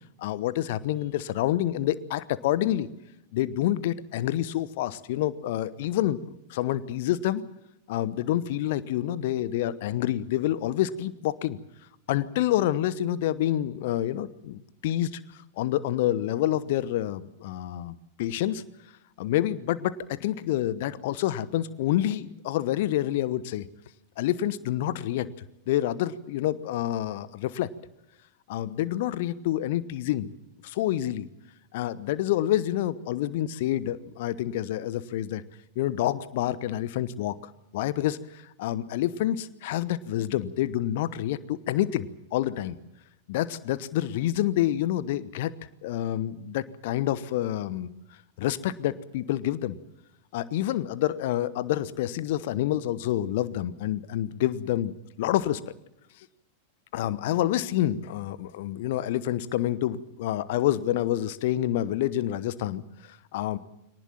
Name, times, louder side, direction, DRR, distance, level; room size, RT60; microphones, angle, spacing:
voice 1, 0.2-2.9 3.3-6.2 6.5-7.4 7.9-11.6 12.1-15.2 15.6-18.6 19.2-23.7 24.2-25.3 25.7-27.7 28.5-30.3 30.6-31.3 31.7-35.4 35.7-37.4 37.7-42.8 43.3-45.5 45.8-47.9 48.4-49.8 50.3-55.6 56.9-63.6, left 13 dB, 50° left, 17 dB, 1.1 m, -28 dB
24.0 x 19.0 x 7.5 m, 0.85 s
figure-of-eight pair, 90°, 0 cm